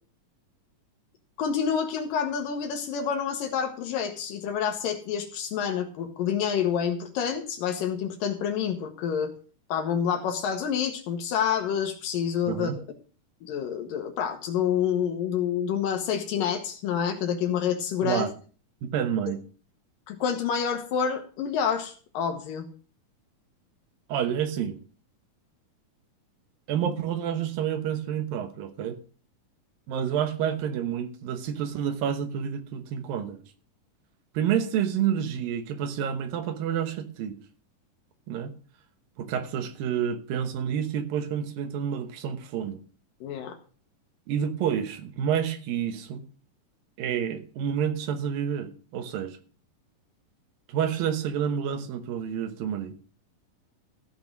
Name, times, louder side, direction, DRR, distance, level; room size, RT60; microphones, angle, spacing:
voice 1, 1.4-9.3 9.7-12.7 13.4-18.2 20.1-22.7 43.2-43.5, left 8 dB, 80° left, 2.8 m, -28 dB
voice 2, 12.5-12.8 18.0-18.3 18.8-19.4 24.1-24.8 26.7-29.0 29.9-33.4 34.3-37.4 38.3-38.5 39.2-42.8 44.3-46.2 47.0-49.4 50.7-52.9, right 8 dB, 90° right, 2.9 m, -29 dB
14.5 x 6.0 x 6.1 m
omnidirectional pair, 3.9 m